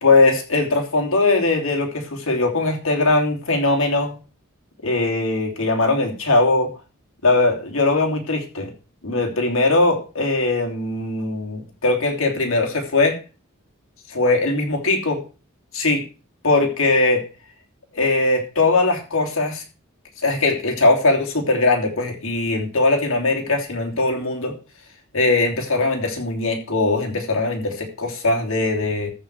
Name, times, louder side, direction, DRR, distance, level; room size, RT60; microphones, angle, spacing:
voice 1, 0.0-4.2 4.8-6.7 7.2-8.7 9.0-13.2 14.1-15.2 15.7-16.0 16.4-17.2 17.9-19.6 20.2-24.5 25.1-29.1, left 2 dB, 70° left, 1 dB, 3.2 m, -20 dB
14.0 x 4.9 x 6.3 m, 0.34 s
head